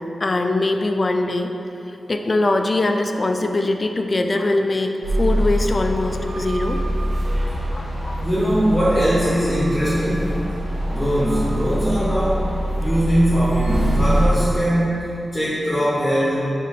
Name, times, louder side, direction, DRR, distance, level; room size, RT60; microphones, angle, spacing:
voice 1, 0.0-1.5 2.1-6.8 7.7-8.3, left 2 dB, 35° left, 5 dB, 0.4 m, -22 dB
sound 1, 5.0-14.3, equal, 90° right, 1.0 m, -24 dB
voice 2, 8.2-10.4 10.9-12.5 12.8-16.4, equal, ahead, -9 dB, 1.3 m, -20 dB
5.2 x 5.1 x 4.2 m, 2.9 s
wide cardioid pair, 140°, 0 cm